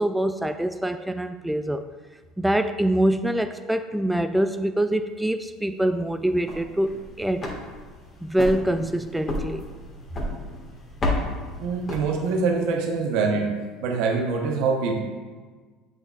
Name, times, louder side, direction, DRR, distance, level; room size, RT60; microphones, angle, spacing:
voice 1, 0.0-1.8 2.4-7.5 8.2-9.6, right 1 dB, 5° right, 8 dB, 0.3 m, -24 dB
sound 1, 6.3-12.6, left 1 dB, 35° left, 1.7 m, -32 dB
voice 2, 11.6-13.5 13.8-15.0, right 4 dB, 65° right, 3 dB, 1.0 m, -24 dB
7.9 x 6.2 x 2.4 m, 1.4 s
hypercardioid pair, 70°, 0 cm